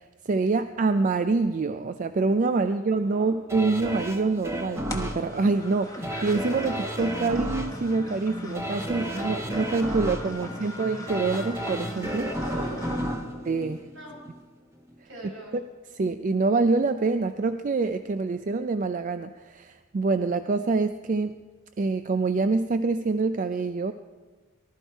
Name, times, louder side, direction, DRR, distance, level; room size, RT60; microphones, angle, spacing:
voice 1, 0.0-12.3 13.5-13.9 16.0-21.4 21.8-23.9, right 3 dB, 40° right, 10 dB, 0.4 m, -26 dB
voice 2, 2.6-3.7 9.0-10.8 12.2-13.2 13.8-14.1 15.0-15.5, right 1 dB, 70° right, -3 dB, 5.9 m, -43 dB
sound 1, 3.5-14.4 14.9-15.0, equal, 15° right, 1.2 m, -33 dB
sound 2, 4.9-13.1, left 1 dB, 15° left, 1.2 m, -39 dB
19.0 x 12.5 x 4.5 m, 1.4 s
head